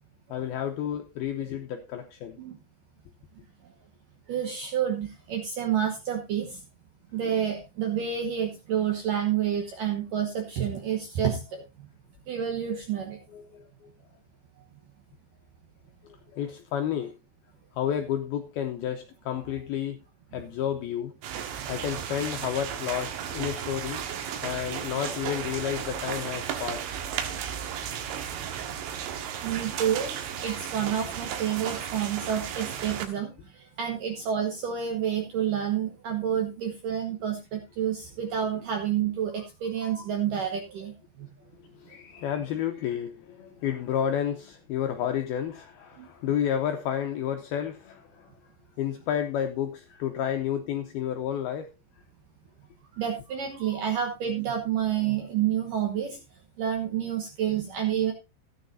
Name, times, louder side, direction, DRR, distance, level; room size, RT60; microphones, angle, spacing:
voice 1, 0.3-2.4 13.3-13.9 16.0-17.1 17.7-20.0 20.3-21.1 21.7-24.0 24.4-26.9 41.7-48.3 48.8-51.7, left 9 dB, 80° left, 2.2 m, -31 dB
voice 2, 4.3-6.6 7.1-11.4 12.3-13.2 29.4-30.1 30.4-41.3 46.0-46.1 52.9-56.2 56.6-58.1, right 9 dB, 70° right, 2.1 m, -29 dB
sound 1, 21.2-33.1, right 9 dB, 85° right, 3.9 m, -34 dB
14.5 x 9.9 x 2.7 m
omnidirectional pair, 5.5 m